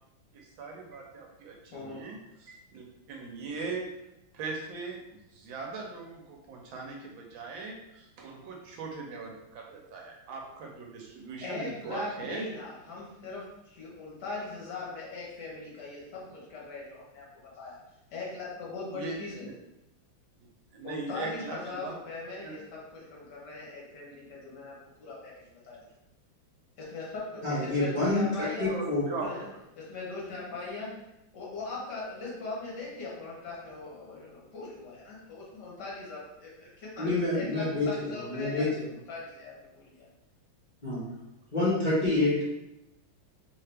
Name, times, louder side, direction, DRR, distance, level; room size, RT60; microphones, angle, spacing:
voice 1, 0.3-3.8 4.3-12.4 18.9-19.2 20.7-21.9 22.4-22.6 28.6-29.3, right 4 dB, 75° right, 0 dB, 1.3 m, -40 dB
voice 2, 11.4-17.2 17.6-17.8 18.1-19.5 20.8-25.3 25.6-25.8 26.8-28.7 29.2-29.5 29.8-30.9 31.3-38.8 39.1-40.1, left 3 dB, 60° left, -5 dB, 1.4 m, -40 dB
voice 3, 27.4-29.1 37.0-38.7 40.8-41.0 41.5-42.4, left 2 dB, 35° left, -10 dB, 0.8 m, -27 dB
3.3 x 2.8 x 3.3 m, 0.88 s
omnidirectional pair, 2.2 m